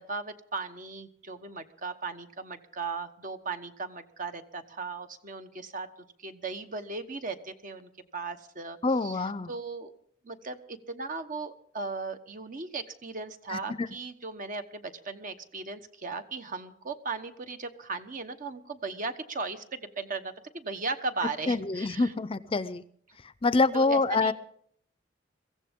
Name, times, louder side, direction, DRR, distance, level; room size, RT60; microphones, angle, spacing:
voice 1, 0.0-5.9 6.2-9.9 10.2-22.1 23.7-24.3, right 3 dB, 45° right, 9 dB, 1.2 m, -37 dB
voice 2, 8.8-9.5 13.5-13.6 21.5-22.8 23.4-24.3, left 3 dB, 30° left, 15 dB, 0.5 m, -26 dB
23.0 x 15.5 x 3.7 m, 0.63 s
head